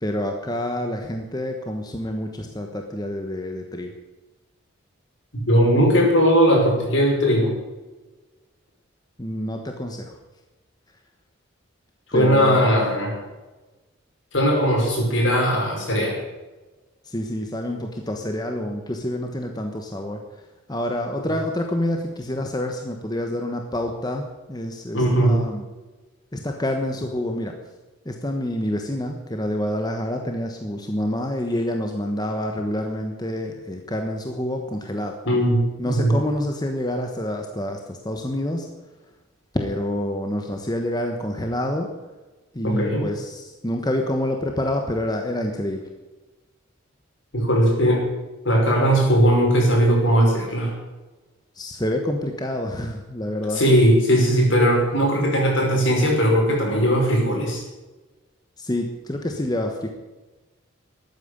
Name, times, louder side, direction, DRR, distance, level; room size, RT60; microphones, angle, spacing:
voice 1, 0.0-3.9 9.2-10.2 12.1-12.7 17.0-20.4 20.7-25.6 26.3-27.5 28.0-35.1 35.8-38.7 39.5-41.9 42.5-45.8 51.5-53.6 58.6-59.9, left 1 dB, 20° left, 3 dB, 1.2 m, -27 dB
voice 2, 5.5-7.5 12.1-13.2 14.3-16.2 24.9-25.4 35.3-35.6 35.8-36.1 42.6-43.0 47.3-48.0 48.4-50.7 53.5-57.6, equal, 65° left, 0 dB, 5.6 m, -18 dB
13.0 x 9.4 x 9.7 m, 1.2 s
head